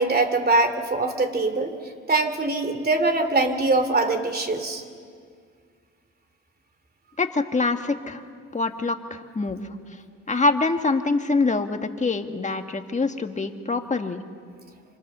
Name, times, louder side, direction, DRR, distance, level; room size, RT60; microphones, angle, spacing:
voice 1, 0.0-1.7 2.1-4.8, right 2 dB, 30° right, 8 dB, 3.0 m, -22 dB
voice 2, 7.2-8.2 8.5-9.6 10.3-14.2, left 3 dB, 25° left, 6 dB, 1.7 m, -25 dB
27.0 x 25.5 x 6.9 m, 2.1 s
cardioid pair, 90°, 30 cm